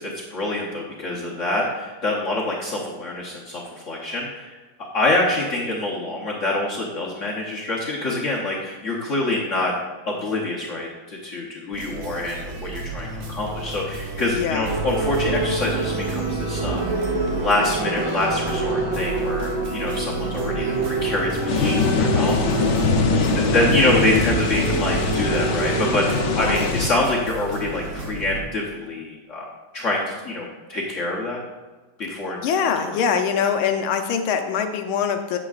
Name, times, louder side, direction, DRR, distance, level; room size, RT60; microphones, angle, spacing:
voice 1, 0.0-9.7 10.1-17.0 17.3-22.4 23.3-29.5 29.7-31.4 32.0-32.4 32.8-33.0, left 2 dB, 50° left, -4 dB, 1.0 m, -26 dB
sound 1, 11.7-28.4, right 3 dB, 50° right, 1.0 m, -33 dB
voice 2, 14.3-14.7 23.0-23.7 26.3-26.7 32.4-35.4, left 7 dB, 90° left, 6 dB, 1.6 m, -24 dB
sound 2, 14.6-26.7, right 2 dB, 80° right, 2.5 m, -26 dB
sound 3, 21.5-26.9, left 5 dB, 70° left, 1.3 m, -23 dB
8.6 x 8.3 x 2.4 m, 1.3 s
omnidirectional pair, 2.2 m